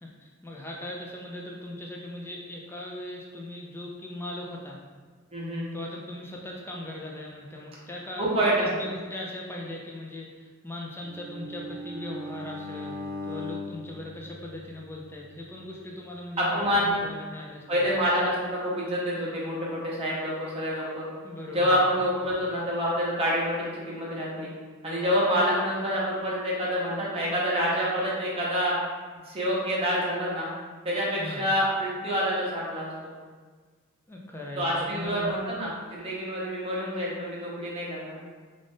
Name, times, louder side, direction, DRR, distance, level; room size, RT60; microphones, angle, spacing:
voice 1, 0.0-4.8 5.7-17.8 21.2-22.0 31.2-31.5 34.1-35.4, left 1 dB, 10° left, -2 dB, 0.4 m, -39 dB
voice 2, 5.3-5.7 8.2-8.9 16.4-16.9 17.7-21.0 21.5-24.5 24.8-28.8 29.3-30.5 30.8-32.9 34.6-38.2, equal, 30° right, -6 dB, 0.8 m, -27 dB
Bowed string instrument, 11.0-15.2, left 1 dB, 80° right, 0.4 m, -39 dB
2.5 x 2.5 x 3.5 m, 1.5 s
head